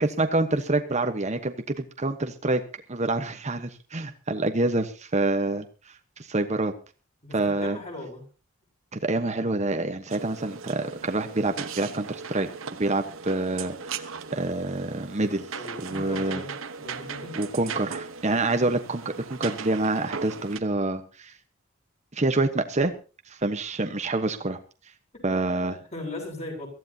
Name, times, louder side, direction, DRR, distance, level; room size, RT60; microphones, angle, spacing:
voice 1, 0.0-2.6 2.9-5.7 6.2-6.7 7.3-7.8 8.9-12.5 12.8-14.1 14.3-15.5 15.8-16.4 17.4-21.3 22.1-22.9 23.3-24.6 25.2-25.8, right 2 dB, 35° right, 7 dB, 1.2 m, -27 dB
voice 2, 7.2-8.2 15.5-17.3 25.3-26.7, left 2 dB, 35° left, 1 dB, 7.2 m, -38 dB
sound 1, 10.1-20.6, right 5 dB, 80° right, 1.2 m, -38 dB
23.0 x 14.5 x 2.8 m, 0.33 s
head